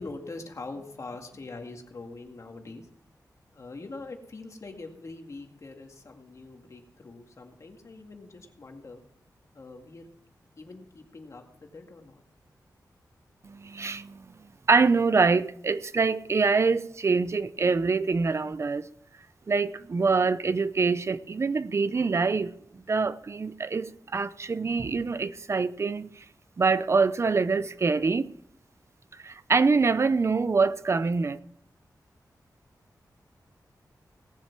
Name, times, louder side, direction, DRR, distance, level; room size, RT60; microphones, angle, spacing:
voice 1, 0.0-2.9 3.5-9.0 9.5-10.1 10.6-12.2, left 3 dB, 50° left, 2.0 m, -43 dB
voice 2, 13.4-14.2 14.7-18.9 19.5-22.5 22.9-26.1 26.6-28.3 29.2-31.4, right 4 dB, 40° right, 0.6 m, -25 dB
18.5 x 7.4 x 6.0 m
wide cardioid pair, 130°, 7 cm